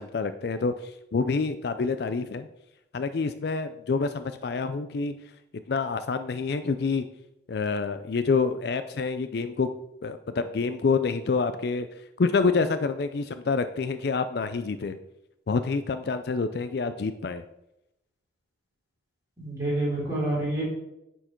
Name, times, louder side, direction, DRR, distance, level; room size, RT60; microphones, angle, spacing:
voice 1, 0.0-2.5 2.9-5.1 5.7-7.1 7.5-9.7 10.0-11.9 12.2-15.0 15.5-17.4, left 4 dB, 55° left, 10 dB, 0.4 m, -27 dB
voice 2, 19.4-20.6, right 1 dB, 15° right, -7 dB, 3.3 m, -28 dB
9.7 x 4.5 x 4.4 m, 0.85 s
head